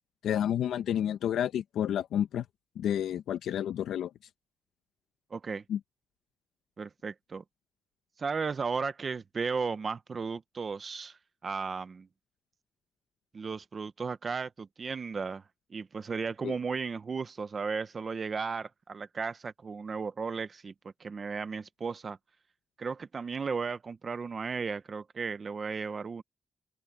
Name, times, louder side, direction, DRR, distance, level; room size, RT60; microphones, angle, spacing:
voice 1, 0.2-2.4 2.8-4.1 5.7-5.8 16.4-16.5, left 10 dB, 85° left, 0.8 m, -30 dB
voice 2, 5.3-5.6 6.8-7.4 8.2-12.1 13.3-15.4 15.7-20.7 21.0-22.2 22.8-26.2, right 5 dB, 30° right, 0.7 m, -35 dB
open air
wide cardioid pair, 180°, 0 cm